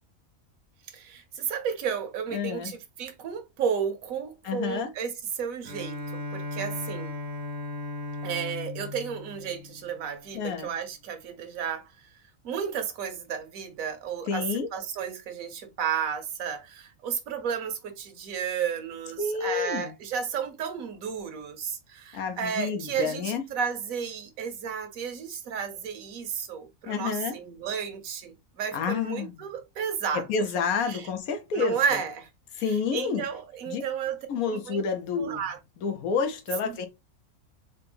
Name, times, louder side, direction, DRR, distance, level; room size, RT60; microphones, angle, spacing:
voice 1, 0.9-6.0 6.3-7.2 8.2-11.9 12.4-30.3 30.9-31.1 31.5-32.3 32.5-32.6 32.9-34.8 35.2-35.6, right 7 dB, 75° right, 1.2 m, -32 dB
voice 2, 2.3-2.7 4.4-4.9 10.3-10.7 14.3-14.7 19.2-19.9 22.1-23.4 26.9-27.4 28.7-29.3 30.1-32.0 32.6-33.2 33.7-33.8 34.3-35.4 35.8-36.9, left 6 dB, 85° left, 1.2 m, -29 dB
Bowed string instrument, 5.6-10.4, left 2 dB, 60° right, 0.8 m, -37 dB
4.3 x 2.2 x 3.3 m
omnidirectional pair, 1.5 m